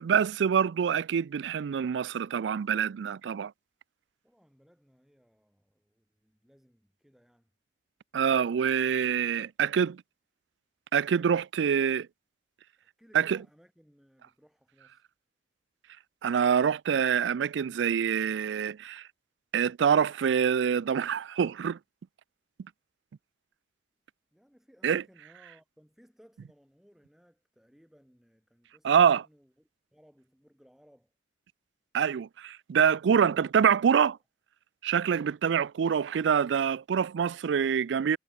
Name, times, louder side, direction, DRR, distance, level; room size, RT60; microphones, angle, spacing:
voice 1, 0.0-3.5 8.1-10.0 10.9-12.1 13.1-13.4 16.2-19.0 19.5-21.8 24.8-25.0 28.8-29.2 31.9-34.1 34.8-38.2, right 7 dB, 90° right, 0.4 m, -25 dB
voice 2, 4.2-7.5 12.8-15.1 24.3-31.1, equal, ahead, 7.8 m, -62 dB
head